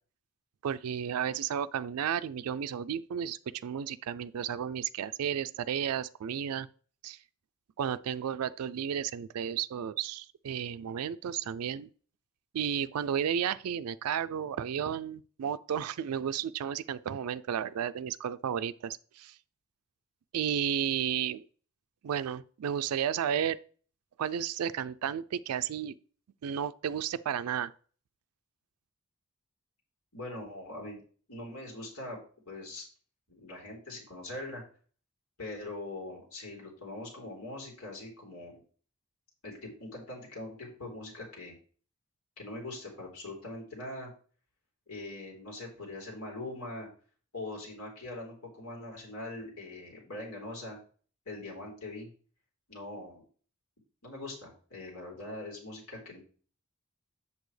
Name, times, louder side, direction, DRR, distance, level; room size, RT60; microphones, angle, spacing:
voice 1, 0.6-6.7 7.0-7.2 7.8-11.9 12.5-19.4 20.3-21.5 22.0-23.6 24.2-26.0 26.4-27.7, right 8 dB, 85° right, 0.4 m, -33 dB
voice 2, 30.1-31.0 31.3-32.2 32.5-32.8 33.3-34.6 35.4-38.6 39.4-41.6 42.4-44.1 44.9-46.9 47.3-50.8 51.3-52.1 52.7-53.2 54.0-56.2, left 2 dB, 85° left, 3.7 m, -42 dB
8.2 x 7.0 x 3.2 m
head